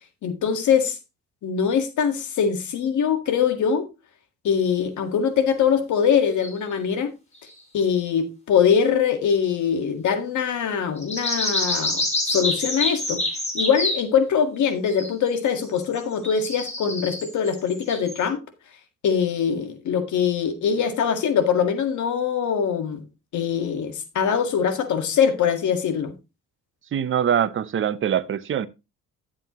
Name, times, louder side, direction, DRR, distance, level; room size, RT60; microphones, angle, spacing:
voice 1, 0.2-1.0 1.4-3.9 4.4-7.1 7.7-13.2 13.5-18.4 19.0-23.0 23.3-26.1, left 7 dB, 75° left, 1.8 m, -22 dB
sound 1, 6.2-6.5 7.5-7.6 11.0-14.0 14.8-15.3 15.6-18.2, left 1 dB, 20° left, 4.1 m, -27 dB
voice 2, 26.9-28.7, right 9 dB, 45° right, 0.7 m, -23 dB
11.0 x 7.6 x 3.0 m
cardioid pair, 90°, 30 cm